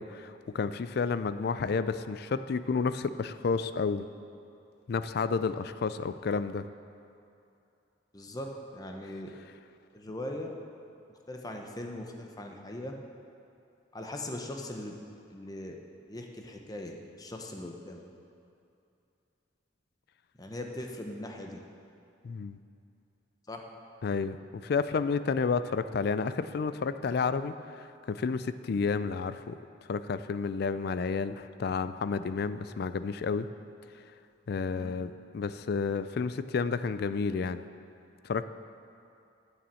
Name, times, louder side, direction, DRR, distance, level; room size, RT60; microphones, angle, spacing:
voice 1, 0.0-4.1 4.9-6.7 22.2-22.6 24.0-29.6 29.9-33.5 33.9-34.0 34.5-37.6 38.2-38.4, left 5 dB, 55° left, 13 dB, 0.4 m, -31 dB
voice 2, 8.1-9.3 9.9-10.5 11.3-12.9 13.9-15.0 15.3-15.8 16.1-18.0 20.4-21.6 23.5-23.6 34.8-34.9, left 1 dB, 20° left, 2 dB, 0.8 m, -40 dB
9.1 x 7.1 x 7.6 m, 2.6 s
head